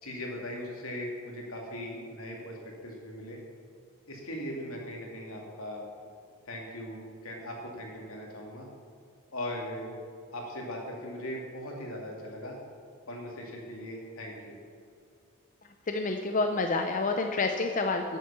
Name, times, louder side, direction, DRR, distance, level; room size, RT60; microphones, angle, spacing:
voice 1, 0.0-3.4 4.1-5.9 6.5-8.7 9.3-9.9 10.3-12.6 13.1-14.6, left 1 dB, 80° left, -1 dB, 2.4 m, -39 dB
voice 2, 15.9-18.2, left 3 dB, 35° left, 4 dB, 0.6 m, -28 dB
9.2 x 8.3 x 6.8 m, 2.3 s
head